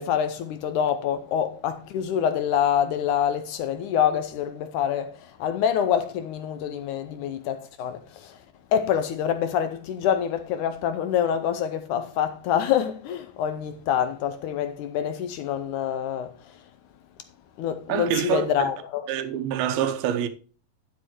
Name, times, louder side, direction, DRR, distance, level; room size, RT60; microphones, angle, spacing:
voice 1, 0.0-5.1 5.4-8.4 8.7-16.3 17.6-19.0, left 9 dB, 80° left, 1.8 m, -26 dB
voice 2, 17.9-18.7 19.1-20.3, right 9 dB, 80° right, 2.6 m, -26 dB
11.0 x 8.2 x 3.1 m
omnidirectional pair, 4.2 m